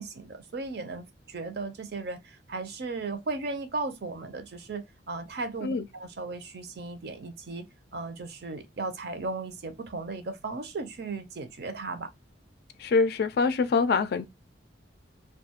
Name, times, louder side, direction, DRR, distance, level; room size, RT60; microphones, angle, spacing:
voice 1, 0.0-7.7 7.9-12.1, right 3 dB, 60° right, 0.5 m, -36 dB
voice 2, 12.8-14.3, left 4 dB, 55° left, 0.3 m, -24 dB
2.4 x 2.3 x 2.8 m
head